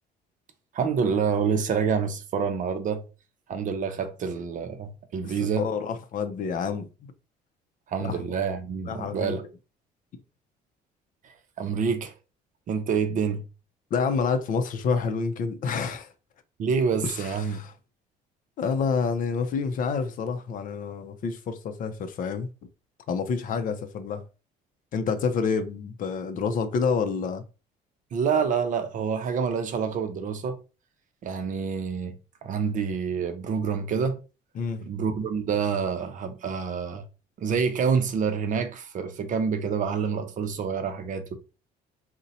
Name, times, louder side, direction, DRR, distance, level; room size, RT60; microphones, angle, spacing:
voice 1, 0.7-3.0 3.5-5.7 7.9-9.4 11.6-12.1 12.7-13.4 16.6-17.6 28.1-30.6 31.2-32.2 32.4-34.2 34.8-37.0 37.4-41.4, right 6 dB, 50° right, 0.5 m, -27 dB
voice 2, 5.2-7.1 8.0-8.2 8.8-9.4 13.9-16.1 17.0-17.7 18.6-22.5 23.1-24.2 24.9-27.4 34.6-34.8, left 5 dB, 50° left, 0.5 m, -28 dB
2.7 x 2.1 x 4.0 m
cardioid pair, 110°, 17 cm